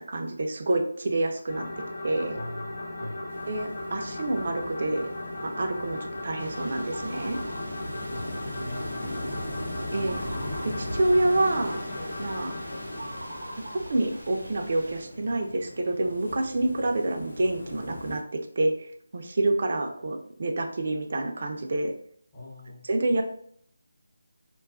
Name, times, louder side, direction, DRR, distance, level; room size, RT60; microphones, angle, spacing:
voice 1, 0.1-1.7 2.0-2.4 3.5-5.1 5.4-7.4 9.9-10.2 10.6-11.8 12.2-12.6 13.7-18.2 18.6-18.9 19.1-21.9 22.8-23.2, right 2 dB, 50° right, 3 dB, 0.5 m, -27 dB
sound 1, 1.5-14.3, left 1 dB, 60° left, 0.9 m, -37 dB
voice 2, 2.3-3.3 7.6-7.7 8.0-9.0 22.3-22.8, left 1 dB, 25° left, -8 dB, 0.8 m, -42 dB
sound 2, 3.3-18.2, left 1 dB, 80° left, 0.8 m, -40 dB
sound 3, 6.4-15.0, right 1 dB, 90° right, 0.8 m, -43 dB
2.5 x 2.3 x 2.3 m, 0.64 s
figure-of-eight pair, 165°, 0 cm